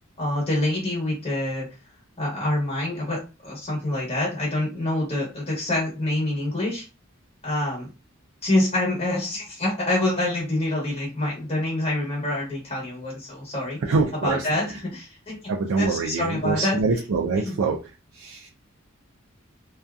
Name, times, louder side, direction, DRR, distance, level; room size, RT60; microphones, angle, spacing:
voice 1, 0.2-1.7 2.2-6.9 7.4-7.9 8.4-13.8 14.1-15.4 15.8-16.8 17.3-17.5, left 1 dB, 30° left, -4 dB, 1.0 m, -26 dB
voice 2, 13.9-14.4 15.5-17.8 18.2-18.5, right 4 dB, 80° right, 1 dB, 0.4 m, -24 dB
2.6 x 2.3 x 2.3 m, 0.29 s
head